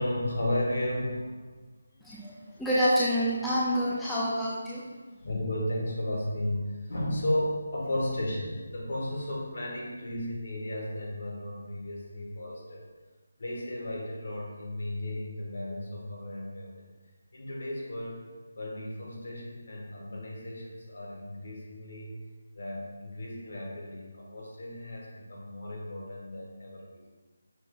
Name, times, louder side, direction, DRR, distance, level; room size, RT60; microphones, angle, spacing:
voice 1, 0.0-1.5 5.2-12.8 13.4-16.8 17.3-18.3 18.6-22.1 22.5-27.1, left 1 dB, 60° left, -3 dB, 1.4 m, -34 dB
voice 2, 2.0-4.8, equal, 5° left, -9 dB, 0.3 m, -27 dB
5.7 x 2.4 x 3.8 m, 1.3 s
figure-of-eight pair, 175°, 0 cm